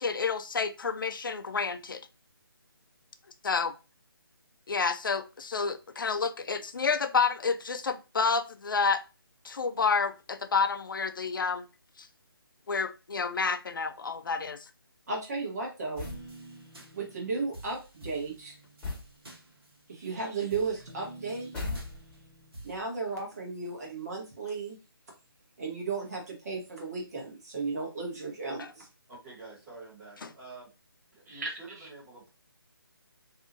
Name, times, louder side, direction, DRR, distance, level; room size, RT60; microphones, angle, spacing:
voice 1, 0.0-2.0 3.4-3.7 4.7-9.0 9.4-11.7 12.0-12.1 12.7-14.7 28.6-28.7 30.2-30.3, left 5 dB, 60° left, 0.4 m, -29 dB
voice 2, 15.1-16.1 16.9-18.5 19.9-21.7 22.6-24.8 25.6-28.9 31.3-31.5 31.8-31.9, right 4 dB, 40° right, 1.0 m, -35 dB
sound 1, 15.9-16.3 18.8-19.1 21.5-22.3, left 3 dB, 5° left, 1.1 m, -36 dB
sound 2, 16.0-20.2 20.5-22.8, right 2 dB, 70° right, 0.9 m, -49 dB
voice 3, 29.1-30.7 31.1-32.3, right 3 dB, 20° right, 1.3 m, -48 dB
2.7 x 2.3 x 2.5 m
figure-of-eight pair, 150°, 13 cm